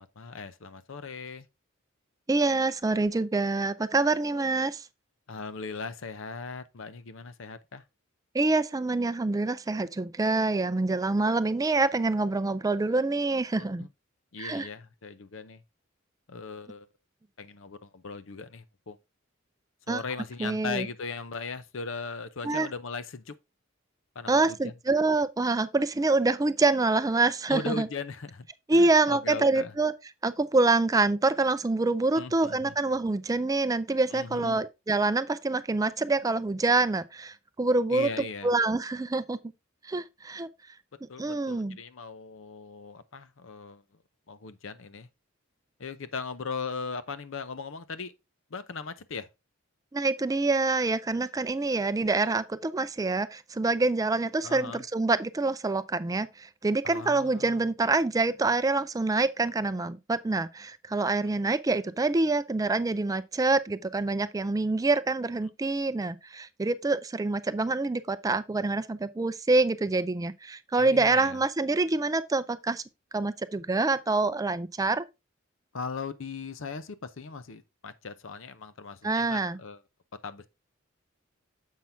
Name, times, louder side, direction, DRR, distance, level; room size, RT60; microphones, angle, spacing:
voice 1, 0.0-1.5 5.3-7.8 13.6-13.9 14.3-15.6 16.3-16.9 17.4-19.0 19.9-23.3 24.1-24.7 27.5-29.7 32.1-32.8 34.1-34.6 37.9-38.5 41.1-43.8 44.3-45.1 45.8-48.1 48.5-49.3 54.4-54.8 56.8-57.7 70.8-71.4 75.7-79.8 80.2-80.5, left 4 dB, 70° left, 0.7 m, -38 dB
voice 2, 2.3-4.9 8.3-13.9 14.4-14.7 19.9-20.0 20.4-20.9 22.4-22.7 24.3-27.9 28.7-29.9 30.2-38.1 38.4-39.4 39.8-40.5 41.2-41.8 49.9-72.8 73.1-75.0 79.0-79.6, right 3 dB, 15° right, 0.4 m, -26 dB
7.4 x 5.8 x 3.5 m
head